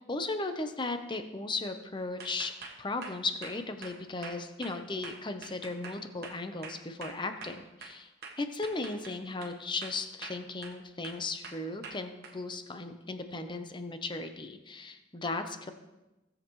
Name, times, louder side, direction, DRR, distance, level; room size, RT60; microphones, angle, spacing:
voice 1, 0.1-2.5 2.8-8.1 8.4-15.7, left 3 dB, 25° left, 7 dB, 0.8 m, -36 dB
sound 1, 2.2-8.0 8.2-9.6 9.8-10.8 11.0-12.4, right 4 dB, 55° right, 1.3 m, -45 dB
17.0 x 7.5 x 3.1 m, 1.0 s
head